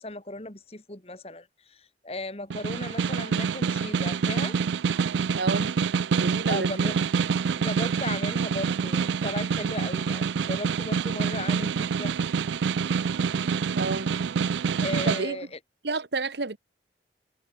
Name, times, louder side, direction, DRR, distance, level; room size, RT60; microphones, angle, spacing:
voice 1, 0.0-4.6 6.5-6.9 7.6-12.1 14.8-15.6, left 2 dB, 35° left, 2.3 m, -36 dB
Snare drum, 2.5-15.2, right 6 dB, 90° right, 0.4 m, -26 dB
voice 2, 5.3-5.7 6.1-6.9 13.8-14.1 15.1-15.4 15.8-16.6, right 3 dB, 75° right, 1.3 m, -30 dB
head